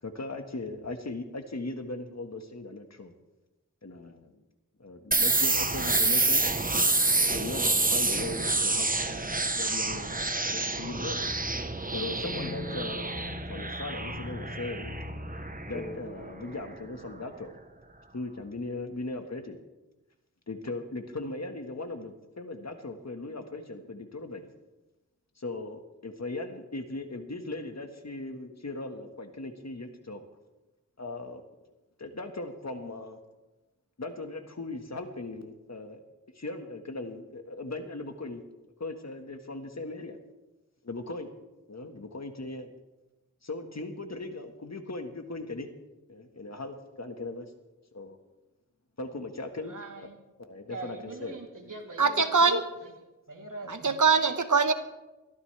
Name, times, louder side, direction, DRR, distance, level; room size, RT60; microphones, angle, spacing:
voice 1, 0.0-3.1 3.8-4.4 4.8-6.5 7.3-10.2 10.5-11.2 11.9-14.9 15.7-17.5 18.1-19.6 20.5-24.5 25.4-30.2 31.0-31.4 32.0-33.2 34.0-36.0 36.3-38.4 38.8-40.2 40.8-41.3 41.7-42.7 43.4-45.7 46.1-47.5 47.9-48.2 49.0-49.7 50.0-50.1 50.4-51.3 52.0-52.1 53.6-53.7, left 2 dB, 60° left, 6 dB, 1.6 m, -38 dB
sound 1, 5.1-16.7, right 2 dB, 25° right, 1.0 m, -28 dB
sound 2, 10.9-16.0, left 2 dB, 25° left, 3.1 m, -40 dB
voice 2, 49.7-50.2 50.7-52.9 53.3-54.0, right 3 dB, 90° right, -1 dB, 3.1 m, -43 dB
voice 3, 52.0-52.6 53.7-54.7, right 4 dB, 75° right, 9 dB, 1.1 m, -23 dB
22.5 x 14.0 x 3.4 m, 1.1 s
wide cardioid pair, 60°, 31 cm